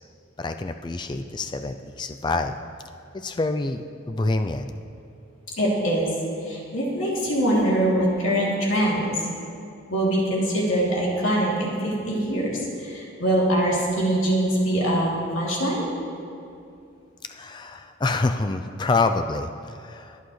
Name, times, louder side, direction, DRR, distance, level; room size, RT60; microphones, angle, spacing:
voice 1, 0.4-2.6 3.1-4.7 17.3-20.2, left 3 dB, 20° left, 7 dB, 0.3 m, -27 dB
voice 2, 5.6-6.1 6.4-9.2 9.9-15.9, right 1 dB, 75° left, -5 dB, 2.9 m, -23 dB
23.0 x 8.4 x 3.2 m, 2.5 s
head